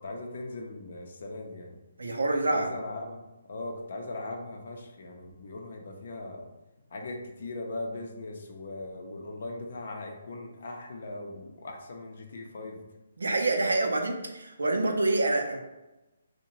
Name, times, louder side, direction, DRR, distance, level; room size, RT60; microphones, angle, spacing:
voice 1, 0.0-1.8 2.5-6.5 6.9-12.8, left 2 dB, 60° left, 2 dB, 0.5 m, -39 dB
voice 2, 2.0-2.7 13.2-15.6, right 2 dB, 80° right, 3 dB, 0.5 m, -26 dB
2.7 x 2.1 x 3.0 m, 1.0 s
hypercardioid pair, 145°, 0 cm